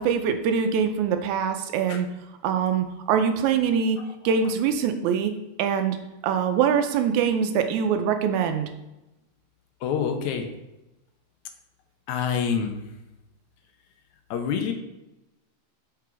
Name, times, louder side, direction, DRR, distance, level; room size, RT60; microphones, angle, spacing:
voice 1, 0.0-2.1 2.4-4.0 4.2-5.3 5.6-6.0 6.2-8.7, right 7 dB, 85° right, 6 dB, 2.0 m, -23 dB
voice 2, 9.8-10.5 12.1-12.8 14.3-14.7, left 7 dB, 85° left, 6 dB, 2.1 m, -26 dB
6.0 x 4.9 x 4.6 m, 0.96 s
omnidirectional pair, 3.3 m